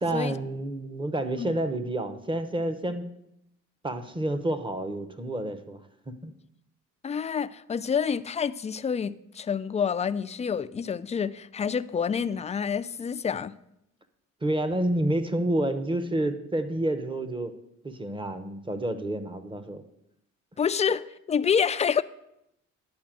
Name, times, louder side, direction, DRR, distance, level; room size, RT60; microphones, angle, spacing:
voice 1, 0.0-3.1 3.8-5.8 6.1-6.3 14.4-17.5 17.8-19.8, right 1 dB, 15° right, 0.9 m, -29 dB
voice 2, 7.0-13.5 20.6-22.0, left 7 dB, 25° left, 0.3 m, -28 dB
10.5 x 4.3 x 7.5 m
cardioid pair, 90°, 30 cm